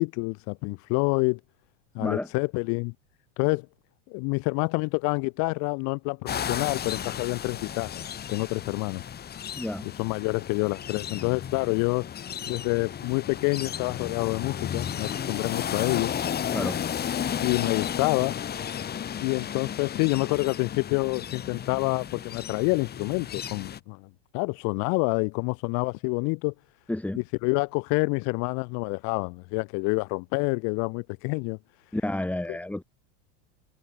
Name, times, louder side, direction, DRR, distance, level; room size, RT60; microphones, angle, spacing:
voice 1, 0.0-1.4 1.9-2.9 3.4-3.7 4.1-8.0 8.3-9.0 9.8-12.1 12.5-16.1 17.4-18.4 19.2-26.5 27.1-31.6 32.5-32.6, left 33 dB, 50° left, 1.2 m, -27 dB
sound 1, 6.3-23.8, left 9 dB, 25° left, 2.8 m, -34 dB
voice 2, 9.6-9.9 16.5-16.8 26.9-27.2 31.9-32.8, left 1 dB, 5° left, 1.8 m, -30 dB
supercardioid pair, 125°, 37 cm